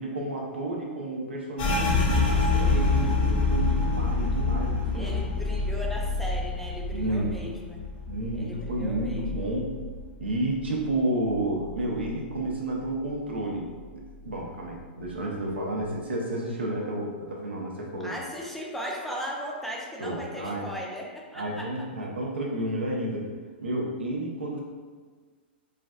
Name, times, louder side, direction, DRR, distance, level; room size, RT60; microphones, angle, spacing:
voice 1, 0.0-5.3 6.9-7.4 8.1-9.7 10.2-18.2 20.0-20.7 21.3-23.3 23.6-24.6, right 1 dB, 85° right, -2 dB, 0.6 m, -31 dB
sound 1, 1.6-11.0 11.3-12.5 12.8-13.3 13.8-14.4, left 3 dB, 60° left, 0.7 m, -27 dB
voice 2, 4.9-7.8 8.4-9.4 18.0-21.8, equal, 5° left, -2 dB, 0.4 m, -37 dB
3.2 x 2.4 x 2.3 m, 1.5 s
hypercardioid pair, 115°, 6 cm